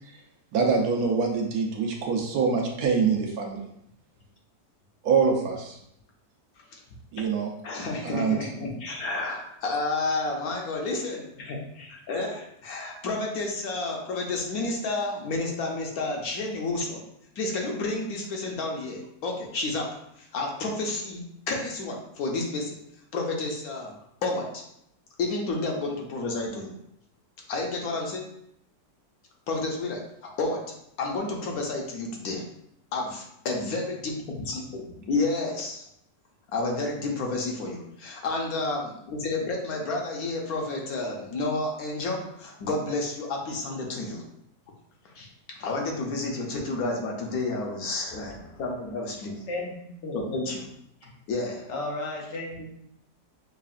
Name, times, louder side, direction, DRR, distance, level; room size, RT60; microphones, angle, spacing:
voice 1, 0.5-3.6 5.0-5.8 7.1-7.5 8.1-8.4, right 5 dB, 70° right, 1 dB, 1.0 m, -24 dB
voice 2, 7.6-17.0 17.4-19.9 20.2-21.2 21.5-22.8 23.1-23.9 24.2-24.6 25.2-26.7 27.5-28.2 29.5-30.7 31.0-32.4 32.9-35.8 36.5-44.2 45.1-49.4 50.1-50.7 51.0-51.7, left 2 dB, 65° left, 0 dB, 1.1 m, -30 dB
voice 3, 49.5-50.2 51.7-52.7, left 2 dB, 85° left, -1 dB, 1.5 m, -34 dB
5.5 x 2.4 x 2.4 m, 0.75 s
omnidirectional pair, 1.8 m